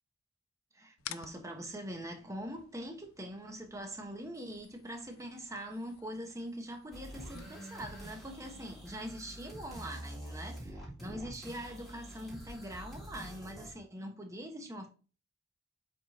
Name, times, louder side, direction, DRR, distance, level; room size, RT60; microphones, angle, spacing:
voice 1, 0.7-14.9, equal, 15° right, 1.3 m, -43 dB
sound 1, 1.0-8.0, left 11 dB, 85° left, 0.5 m, -53 dB
sound 2, 6.9-13.7, equal, ahead, 2.8 m, -46 dB
7.9 x 5.2 x 2.8 m
head